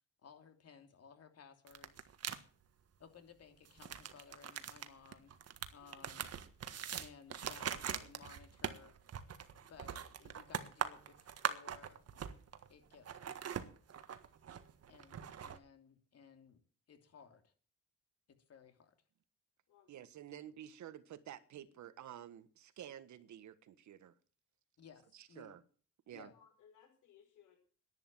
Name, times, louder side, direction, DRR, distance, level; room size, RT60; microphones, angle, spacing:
voice 1, 0.2-2.1 3.0-5.3 5.7-6.3 7.0-8.9 9.7-12.0 12.7-13.6 14.9-16.6 16.9-17.5 18.3-18.9 24.8-25.6 26.1-26.3, left 6 dB, 55° left, 3.0 m, -59 dB
sound 1, 1.7-2.4 3.7-12.7 12.9-15.6, right 8 dB, 55° right, 1.6 m, -42 dB
voice 2, 19.9-24.1 25.1-25.6 26.1-26.3, right 11 dB, 70° right, 1.5 m, -51 dB
voice 3, 26.3-27.6, left 8 dB, 80° left, 5.5 m, -64 dB
11.0 x 10.5 x 7.7 m
cardioid pair, 90°, 30 cm